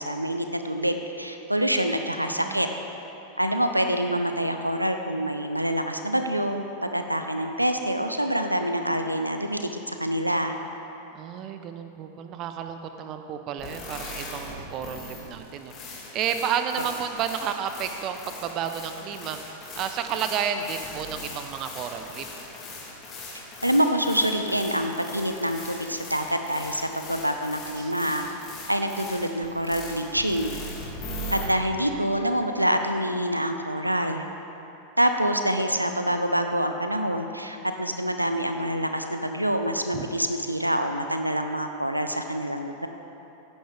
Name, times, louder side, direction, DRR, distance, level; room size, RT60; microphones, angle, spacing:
voice 1, 0.0-2.7 3.4-10.5 23.6-28.3 28.7-30.6 31.3-34.2 35.0-42.9, equal, 85° right, 6 dB, 0.6 m, -26 dB
voice 2, 2.1-2.8 11.1-15.7 16.1-19.4 19.8-22.2 27.8-27.9 31.2-31.6 39.9-40.1, right 8 dB, 35° right, 7 dB, 0.7 m, -31 dB
sound 1, 13.6-31.4, left 1 dB, 30° left, 3.1 m, -40 dB
15.5 x 10.5 x 3.5 m, 3.0 s
figure-of-eight pair, 90°, 0 cm